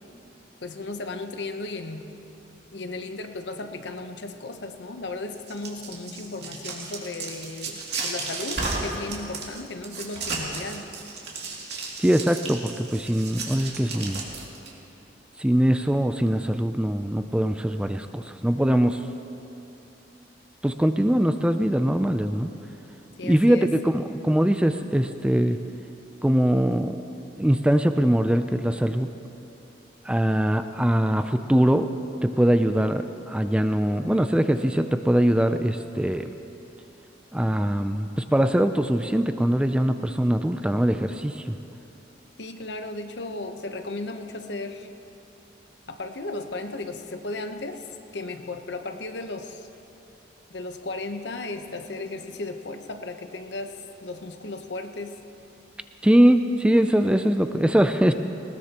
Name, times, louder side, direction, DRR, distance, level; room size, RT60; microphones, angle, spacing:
voice 1, 0.6-2.2 2.7-10.9 23.2-23.7 42.4-44.9 45.9-49.7 50.5-55.2, left 2 dB, 70° left, 7 dB, 0.9 m, -35 dB
sound 1, 5.3-14.7, right 3 dB, 65° right, 2.5 m, -33 dB
voice 2, 12.0-14.2 15.4-19.0 20.6-22.5 23.2-25.6 26.2-27.0 27.4-29.1 30.0-31.9 32.2-36.3 37.3-41.6 56.0-58.1, equal, 5° right, 8 dB, 0.4 m, -22 dB
19.5 x 19.5 x 2.9 m, 2.8 s
head